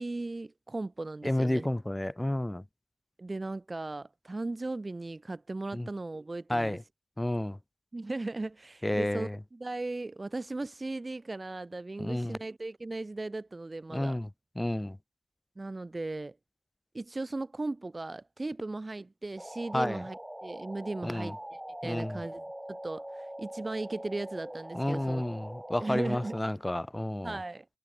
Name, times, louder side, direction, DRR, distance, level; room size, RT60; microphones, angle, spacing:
voice 1, 0.0-1.7 3.2-6.8 7.9-14.2 15.6-16.4 16.9-21.4 21.8-25.2 25.8-26.4 27.2-27.7, right 2 dB, 30° right, 0.8 m, -37 dB
voice 2, 1.2-2.6 5.7-5.9 6.5-6.8 7.2-7.6 8.8-9.4 12.0-12.4 13.9-14.3 14.5-15.0 19.7-20.0 21.0-21.3 21.8-22.2 24.7-27.4, left 1 dB, 15° left, 1.7 m, -31 dB
sound 1, 19.4-26.4, right 1 dB, 10° right, 3.1 m, -43 dB
supercardioid pair, 40°, 0 cm